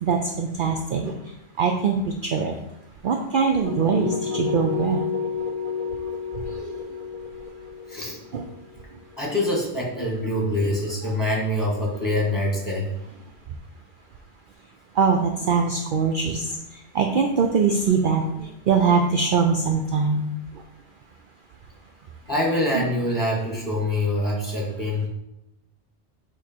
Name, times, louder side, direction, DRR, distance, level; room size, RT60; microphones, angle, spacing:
voice 1, 0.0-2.6 3.0-5.0 6.4-6.8 8.3-8.5 14.9-20.3 22.7-22.9, right 5 dB, 60° right, 4 dB, 0.6 m, -23 dB
sound 1, 3.6-9.5, left 5 dB, 40° left, 0.7 m, -30 dB
voice 2, 9.2-12.9 17.1-17.2 22.3-25.1, left 1 dB, 15° left, -3 dB, 1.6 m, -25 dB
8.0 x 3.1 x 4.4 m, 0.86 s
omnidirectional pair, 1.2 m